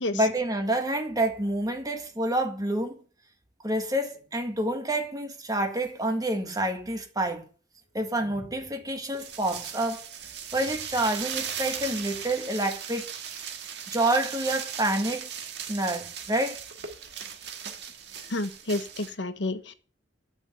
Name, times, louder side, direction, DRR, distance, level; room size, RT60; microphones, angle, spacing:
voice 1, 0.1-3.0 3.6-7.4 7.9-10.1 10.5-13.1 13.9-15.3 15.7-16.6, right 1 dB, 20° right, 1.8 m, -28 dB
sound 1, 9.0-19.1, right 8 dB, 65° right, 1.7 m, -38 dB
voice 2, 18.3-19.7, left 2 dB, 85° left, 1.2 m, -30 dB
11.0 x 6.8 x 9.0 m
head